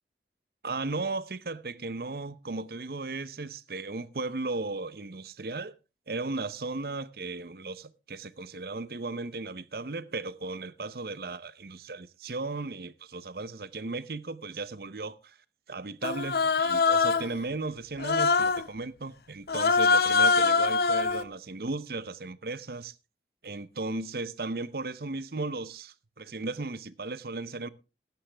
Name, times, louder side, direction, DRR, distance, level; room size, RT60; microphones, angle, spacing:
voice 1, 0.6-5.7 6.1-15.4 15.7-22.9 23.4-27.7, right 3 dB, 60° right, 0.7 m, -36 dB
Human voice, 16.0-17.4 18.0-18.7 19.5-21.2, left 4 dB, 60° left, 0.7 m, -23 dB
15.0 x 11.5 x 3.4 m
head